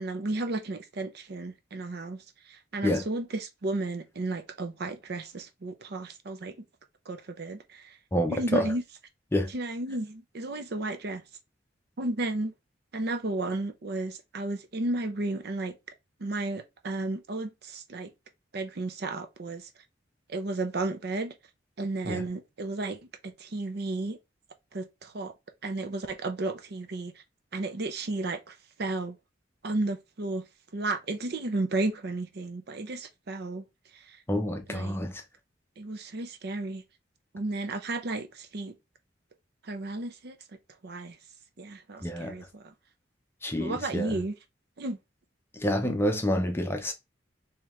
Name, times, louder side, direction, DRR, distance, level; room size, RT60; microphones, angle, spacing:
voice 1, 0.0-6.5 7.1-8.0 8.3-8.8 9.5-11.2 12.0-12.5 12.9-15.8 16.2-18.1 18.5-19.7 20.3-21.3 21.8-24.2 24.7-25.3 25.6-27.2 27.5-29.2 29.6-30.5 30.7-33.6 33.9-34.2 34.7-35.0 35.8-36.8 37.3-38.7 39.6-40.4 40.8-41.2 41.6-42.7 43.6-44.3 44.8-45.0, right 2 dB, 55° right, 0.6 m, -33 dB
voice 2, 8.1-8.7 9.3-9.5 22.0-22.3 34.3-35.2 42.0-42.4 43.4-44.2 45.5-46.9, equal, 15° left, 0.6 m, -28 dB
3.2 x 2.9 x 3.6 m
head